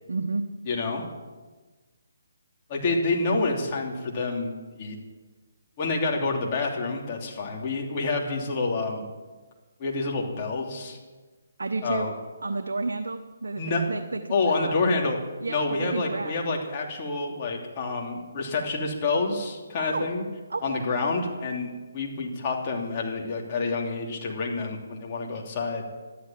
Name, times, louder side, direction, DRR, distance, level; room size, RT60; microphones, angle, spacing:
voice 1, 0.1-0.5 2.9-3.0 11.6-12.1 12.4-14.7 15.4-16.4 19.8-20.1 20.5-20.9, right 3 dB, 80° right, 6 dB, 1.0 m, -31 dB
voice 2, 0.7-1.0 2.7-4.5 4.8-5.0 5.8-9.1 9.8-11.0 11.8-12.1 13.6-13.9 14.3-15.2 15.5-20.2 20.6-25.9, left 3 dB, 35° left, -1 dB, 3.1 m, -28 dB
13.5 x 11.5 x 7.4 m, 1.3 s
hypercardioid pair, 150°, 0 cm